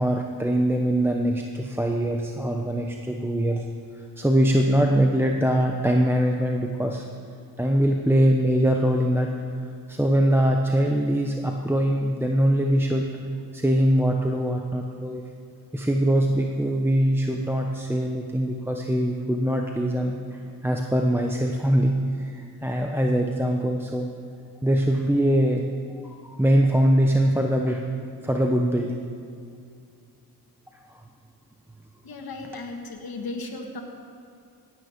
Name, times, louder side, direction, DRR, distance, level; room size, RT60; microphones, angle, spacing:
voice 1, 0.0-3.7 4.0-7.1 7.6-9.3 9.9-13.1 13.5-15.2 15.7-24.1 24.6-25.7 26.1-27.8 28.2-29.0 30.9-31.0, equal, 5° right, 1 dB, 0.9 m, -22 dB
voice 2, 32.0-33.8, left 3 dB, 70° left, 2 dB, 1.8 m, -35 dB
17.0 x 9.2 x 5.1 m, 2.3 s
cardioid pair, 75°, 37 cm